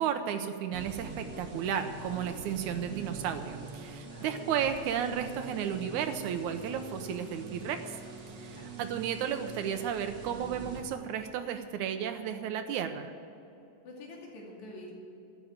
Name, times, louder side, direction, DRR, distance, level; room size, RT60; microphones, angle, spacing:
voice 1, 0.0-7.8 8.3-13.1, right 8 dB, 85° right, 7 dB, 2.2 m, -33 dB
sound 1, 0.7-10.8, right 3 dB, 40° right, 1.9 m, -44 dB
voice 2, 4.1-4.4 8.5-8.7 13.8-14.9, left 2 dB, 75° left, -2 dB, 3.9 m, -47 dB
12.0 x 9.6 x 9.5 m, 2.8 s
omnidirectional pair, 3.3 m